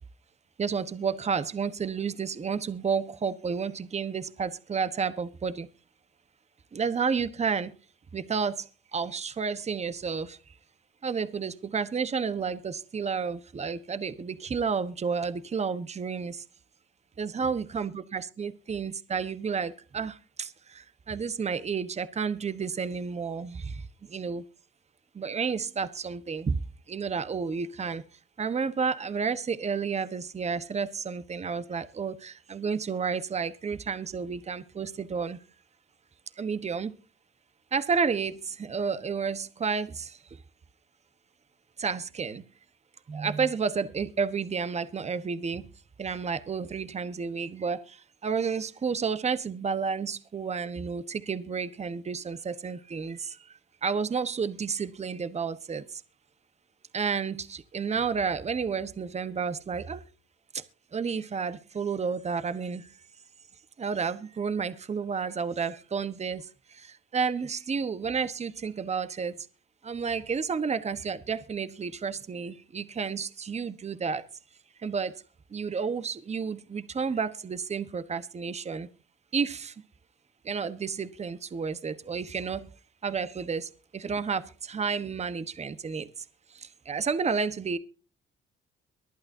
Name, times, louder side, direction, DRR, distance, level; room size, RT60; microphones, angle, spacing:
voice 1, 0.6-5.7 6.7-7.7 8.1-10.4 11.0-16.4 17.2-24.4 25.1-26.6 26.9-28.0 28.4-35.4 36.4-36.9 37.7-40.4 41.8-42.4 43.1-45.7 46.0-56.0 56.9-60.1 60.5-60.6 60.9-62.9 63.8-69.5 69.8-74.3 74.8-75.1 75.5-78.9 79.3-79.7 80.4-82.7 83.0-86.2 86.5-87.8, right 5 dB, 35° right, 1.2 m, -31 dB
23.5 x 8.8 x 2.7 m
cardioid pair, 90°, 20 cm